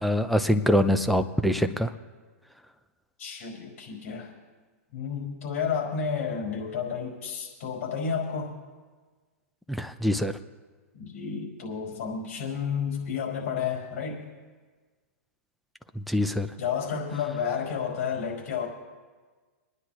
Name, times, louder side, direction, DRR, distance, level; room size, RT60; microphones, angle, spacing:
voice 1, 0.0-1.9 9.7-10.3 16.0-16.5, equal, ahead, 8 dB, 0.5 m, -24 dB
voice 2, 3.2-4.3 4.9-8.6 10.9-14.2 16.6-18.7, left 6 dB, 65° left, 0 dB, 5.2 m, -31 dB
27.0 x 9.8 x 3.1 m, 1.4 s
hypercardioid pair, 135°, 8 cm